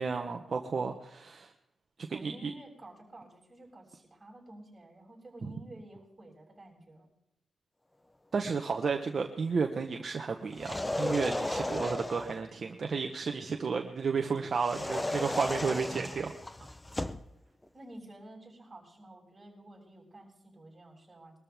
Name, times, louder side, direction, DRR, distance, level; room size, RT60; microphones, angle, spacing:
voice 1, 0.0-1.5 2.2-2.5 8.3-16.3, right 5 dB, 50° right, 4 dB, 1.1 m, -32 dB
voice 2, 2.1-7.1 17.7-21.4, right 1 dB, 25° right, -4 dB, 6.8 m, -51 dB
sound 1, 10.5-12.4 14.6-17.3, left 1 dB, 15° left, 0.7 m, -34 dB
22.5 x 13.0 x 3.6 m, 0.86 s
wide cardioid pair, 105°, 0 cm